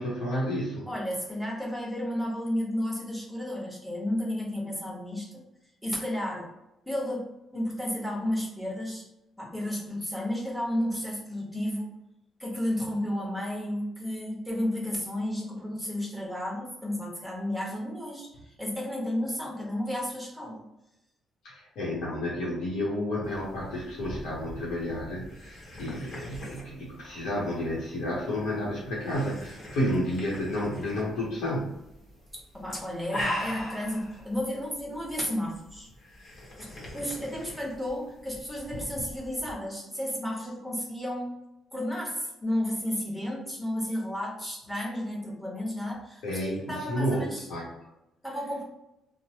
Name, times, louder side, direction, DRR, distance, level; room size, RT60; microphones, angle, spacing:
voice 1, 0.0-0.9 21.4-31.8 46.2-47.7, left 1 dB, 85° left, -5 dB, 0.9 m, -31 dB
voice 2, 0.8-5.4 5.8-6.5 6.8-9.1 9.4-11.9 12.4-20.6 32.3-35.9 36.6-41.3 41.7-47.5 48.2-48.6, left 1 dB, ahead, -3 dB, 1.1 m, -32 dB
sound 1, 23.2-39.5, equal, 45° left, 1.2 m, -41 dB
3.0 x 2.1 x 2.8 m, 0.90 s
cardioid pair, 90°, 0 cm